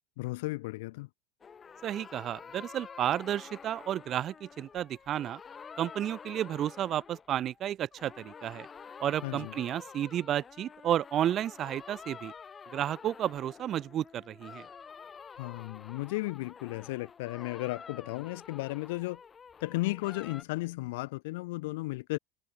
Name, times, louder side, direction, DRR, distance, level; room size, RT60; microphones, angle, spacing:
voice 1, 0.2-1.1 9.2-9.5 15.4-19.2 19.6-22.2, left 21 dB, 60° left, 1.6 m, -34 dB
sound 1, 1.4-7.7 7.9-20.4, left 6 dB, 15° left, 4.6 m, -49 dB
voice 2, 1.8-5.4 5.8-8.7 9.0-12.3 12.7-14.7, right 11 dB, 25° right, 1.2 m, -32 dB
supercardioid pair, 175°, 0 cm